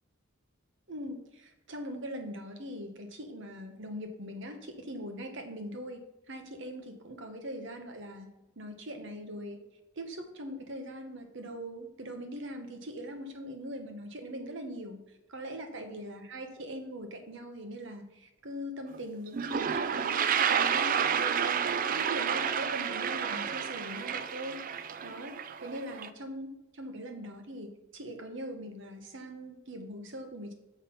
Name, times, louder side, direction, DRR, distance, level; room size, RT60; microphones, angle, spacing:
voice 1, 0.9-6.0 6.3-8.3 8.6-9.6 10.0-15.0 15.3-25.3 25.6-30.5, equal, 60° right, 5 dB, 1.1 m, -41 dB
Toilet flush, 18.9-19.0 19.3-26.1, right 7 dB, 40° right, 0.3 m, -30 dB
6.4 x 5.3 x 5.4 m, 0.93 s
head